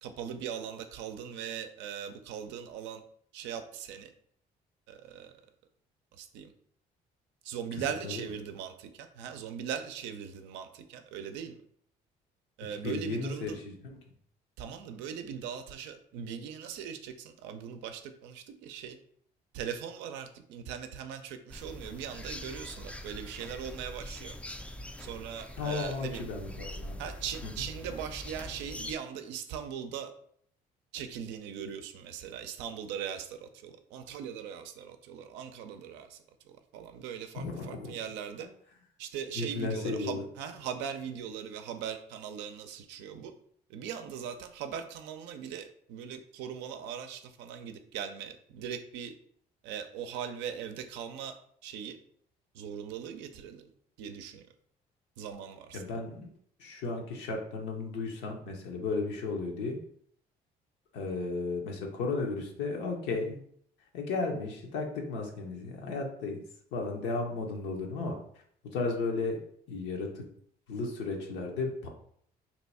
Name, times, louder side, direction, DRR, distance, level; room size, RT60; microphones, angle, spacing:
voice 1, 0.0-3.0 3.3-4.1 4.9-5.4 6.1-6.5 7.4-11.6 12.6-13.6 14.6-19.0 19.5-24.4 25.0-26.2 27.0-30.1 30.9-38.5 39.0-43.3 43.7-49.1 49.6-51.4 51.6-52.0 52.5-53.7 54.0-54.5 55.2-55.8, right 8 dB, 80° right, 8 dB, 0.5 m, -40 dB
voice 2, 12.8-14.0 25.6-26.9 27.4-27.7 37.4-37.9 39.4-40.2 55.7-56.3 56.6-59.8 60.9-63.4 63.9-66.4 66.7-68.2 68.6-69.4 69.7-70.2 70.7-71.9, left 3 dB, 80° left, 1 dB, 0.8 m, -34 dB
sound 1, 21.5-28.9, left 1 dB, 5° left, 0.3 m, -43 dB
2.8 x 2.3 x 4.1 m, 0.64 s
supercardioid pair, 70°, 18 cm